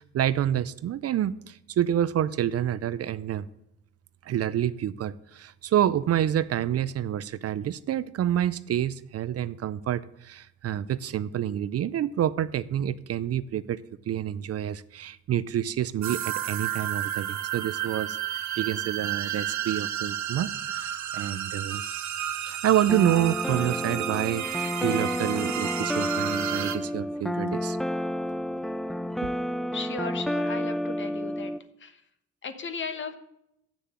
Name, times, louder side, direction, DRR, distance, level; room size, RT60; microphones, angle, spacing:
voice 1, 0.0-3.5 4.2-13.8 14.1-21.8 22.4-27.8 29.2-29.3, right 11 dB, 55° right, 16 dB, 0.5 m, -28 dB
sound 1, 16.0-26.8, right 10 dB, 70° right, 1.0 m, -32 dB
sound 2, 22.9-31.6, equal, ahead, 0.3 m, -30 dB
voice 2, 29.7-31.5 31.8-31.9 32.4-33.2, left 5 dB, 40° left, 9 dB, 1.3 m, -36 dB
7.7 x 6.7 x 7.6 m, 0.80 s
cardioid pair, 90°, 30 cm